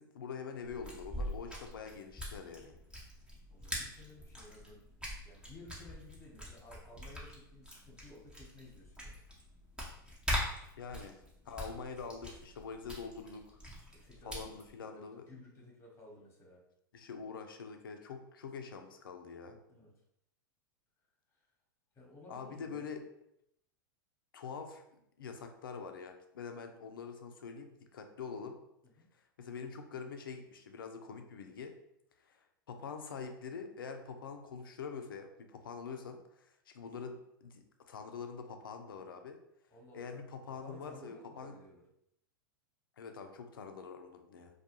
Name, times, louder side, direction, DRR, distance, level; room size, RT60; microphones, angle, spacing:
voice 1, 0.0-2.7 10.8-13.6 14.2-15.2 16.9-19.6 22.3-23.0 24.3-28.6 29.4-31.7 32.3-32.4 32.7-39.4 39.9-41.5 43.0-44.6, left 5 dB, 80° left, 6 dB, 0.4 m, -45 dB
sound 1, 0.7-14.7, equal, 10° right, 0.7 m, -43 dB
voice 2, 3.5-4.8 5.2-9.2 13.9-16.6 19.7-19.9 21.3-21.5 21.9-22.9 28.8-29.1 39.7-40.0 40.6-41.8, left 1 dB, 25° left, -2 dB, 1.0 m, -55 dB
2.3 x 2.2 x 2.9 m, 0.78 s
hypercardioid pair, 100°, 11 cm